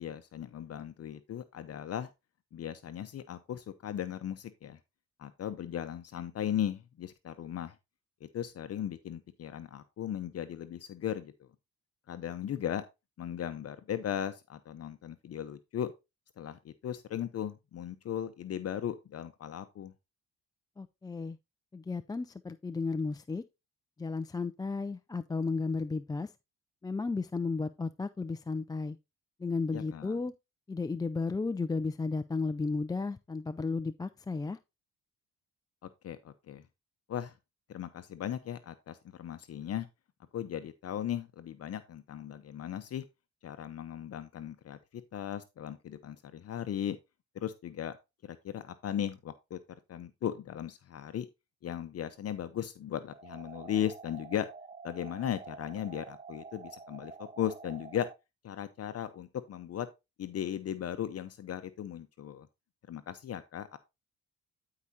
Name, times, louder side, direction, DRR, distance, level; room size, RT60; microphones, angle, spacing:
voice 1, 0.0-2.1 2.5-4.8 5.2-7.7 8.2-11.3 12.1-12.8 13.2-15.9 16.4-19.9 29.7-30.2 36.0-36.6 37.1-37.3 37.7-39.9 40.3-43.0 43.4-47.0 47.3-47.9 48.2-49.6 49.9-51.3 51.6-54.5 54.8-58.1 58.4-59.9 60.2-62.5 62.9-63.8, left 10 dB, 55° left, 0.8 m, -37 dB
voice 2, 20.8-21.4 21.7-23.4 24.0-26.3 26.8-29.0 29.4-30.3 30.7-34.6, left 4 dB, 15° left, 0.4 m, -34 dB
sound 1, 53.1-58.1, right 5 dB, 25° right, 0.9 m, -48 dB
13.0 x 4.9 x 2.7 m
cardioid pair, 90°, 30 cm